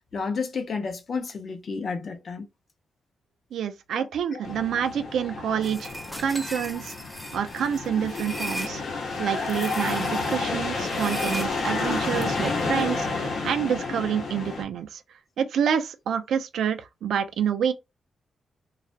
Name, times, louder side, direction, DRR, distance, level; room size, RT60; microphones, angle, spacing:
voice 1, 0.1-2.4 3.9-4.1 4.3-4.4, left 5 dB, 50° left, 0.6 m, -31 dB
voice 2, 3.5-6.9 7.3-8.8 9.2-15.0 15.4-17.7, right 8 dB, 85° right, 0.4 m, -27 dB
sound 1, 4.4-14.6, left 3 dB, 80° left, 0.8 m, -30 dB
sound 2, 5.6-8.7 9.4-10.4 10.9-12.9, equal, ahead, 0.4 m, -37 dB
2.3 x 2.0 x 2.6 m
cardioid pair, 120°, 0 cm